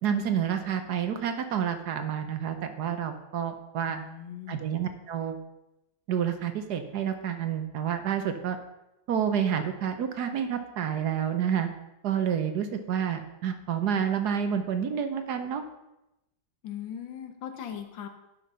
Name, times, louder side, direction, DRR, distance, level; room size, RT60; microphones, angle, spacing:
voice 1, 0.0-4.0 4.5-5.4 6.1-8.6 9.1-11.7 12.0-15.6, right 8 dB, 65° right, 8 dB, 1.3 m, -29 dB
voice 2, 3.9-4.7 16.6-18.1, left 9 dB, 85° left, 7 dB, 1.8 m, -39 dB
11.0 x 5.6 x 5.5 m, 0.92 s
omnidirectional pair, 2.0 m